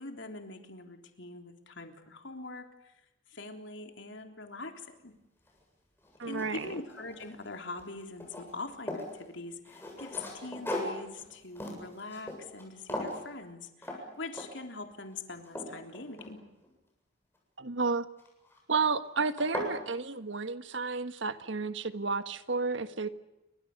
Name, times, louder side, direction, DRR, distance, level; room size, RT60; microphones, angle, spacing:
voice 1, 0.0-2.9 3.3-5.2 6.3-16.5, left 3 dB, 75° left, 5 dB, 3.6 m, -43 dB
sound 1, 5.5-5.6 6.0-7.5 7.8-9.1 9.6-12.6 12.9-13.2 13.8-14.0 14.3-14.7 15.1-16.7 18.2-18.6 19.0-19.1 19.4-19.8, left 1 dB, 10° left, 7.6 m, -39 dB
voice 2, 6.2-6.7 17.6-18.1 18.7-23.1, right 4 dB, 75° right, 10 dB, 1.5 m, -31 dB
29.0 x 25.0 x 6.8 m, 0.92 s
head